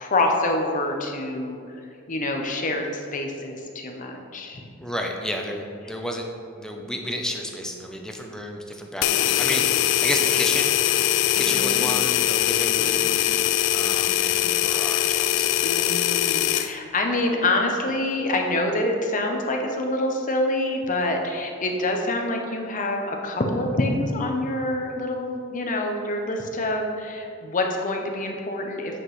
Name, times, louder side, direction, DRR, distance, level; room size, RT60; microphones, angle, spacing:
voice 1, 0.0-1.8 2.1-4.6 9.2-9.7 11.4-11.9 12.8-13.2 15.6-29.0, left 2 dB, 40° left, 2 dB, 0.7 m, -26 dB
voice 2, 4.8-6.3 6.6-11.0 11.3-13.3 13.7-15.6, equal, 5° left, 2 dB, 0.5 m, -32 dB
sound 1, 9.0-16.7, left 11 dB, 65° left, 0.3 m, -22 dB
8.6 x 4.9 x 3.2 m, 2.5 s
head